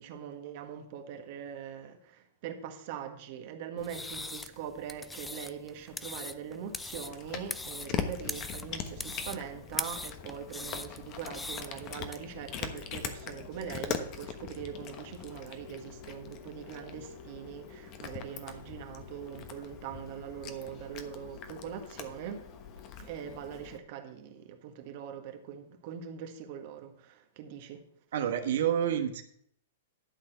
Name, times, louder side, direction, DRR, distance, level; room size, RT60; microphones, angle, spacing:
voice 1, 0.0-22.4 23.0-27.8, right 8 dB, 50° right, 1.6 m, -42 dB
sound 1, 3.8-12.2, left 2 dB, 5° left, 0.5 m, -41 dB
Cat, 6.7-23.8, left 7 dB, 40° left, 1.2 m, -42 dB
sound 2, 12.4-22.9, left 5 dB, 70° left, 2.4 m, -54 dB
voice 2, 28.1-29.2, right 9 dB, 70° right, 1.2 m, -28 dB
11.5 x 4.2 x 8.0 m
hypercardioid pair, 130°, 0 cm